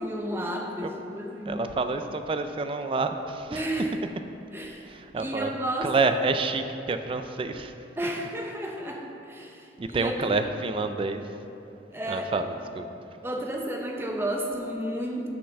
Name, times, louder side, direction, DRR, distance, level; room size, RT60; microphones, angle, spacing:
voice 1, 0.0-1.7 3.5-3.9 4.5-4.9 5.1-5.9 8.0-10.4 11.9-12.4 13.2-15.3, right 1 dB, 15° right, 1 dB, 0.7 m, -32 dB
voice 2, 1.5-3.7 4.8-5.5 5.8-7.7 9.8-11.3 12.1-12.9, right 3 dB, 30° right, 8 dB, 0.3 m, -28 dB
6.7 x 5.6 x 6.5 m, 2.8 s
head